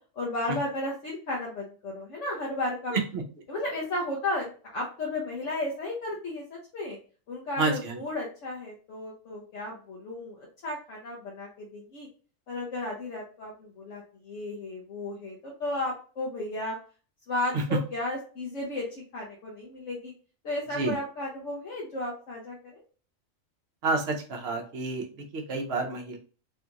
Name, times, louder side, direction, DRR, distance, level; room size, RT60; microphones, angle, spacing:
voice 1, 0.2-2.9 3.5-7.0 7.3-12.1 12.5-16.8 17.3-20.1 20.4-22.8, left 2 dB, 65° left, -3 dB, 1.1 m, -34 dB
voice 2, 2.9-3.2 7.6-8.0 17.5-17.8 20.7-21.0 23.8-26.2, right 3 dB, 55° right, 1 dB, 1.0 m, -29 dB
3.4 x 2.5 x 2.8 m, 0.38 s
omnidirectional pair, 1.4 m